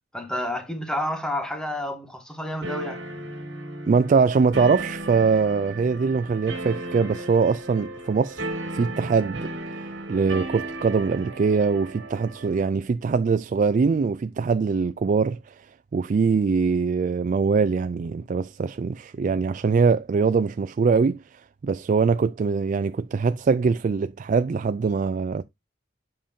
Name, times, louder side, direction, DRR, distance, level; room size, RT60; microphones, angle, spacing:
voice 1, 0.1-3.0, left 1 dB, 5° left, 1.3 m, -30 dB
sound 1, 2.6-12.7, right 2 dB, 65° right, 2.3 m, -35 dB
voice 2, 3.9-9.5 10.1-15.5 15.9-21.2 21.6-25.4, right 5 dB, 40° right, 0.3 m, -22 dB
7.7 x 5.1 x 2.7 m
head